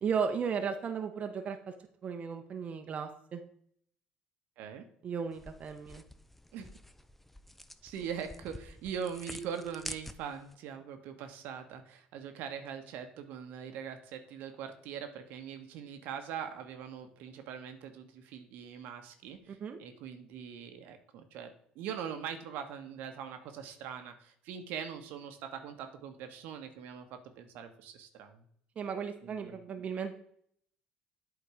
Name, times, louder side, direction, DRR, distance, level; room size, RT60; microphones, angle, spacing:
voice 1, 0.0-1.6 2.0-3.4 5.0-6.0 19.5-19.8 28.8-30.1, right 6 dB, 45° right, 6 dB, 0.7 m, -35 dB
voice 2, 4.6-4.9 6.5-6.7 7.8-28.4 29.2-29.5, right 7 dB, 75° right, 7 dB, 1.0 m, -42 dB
sound 1, 5.3-10.5, left 1 dB, 5° left, 0.4 m, -48 dB
8.2 x 3.8 x 4.8 m, 0.66 s
supercardioid pair, 85°, 3 cm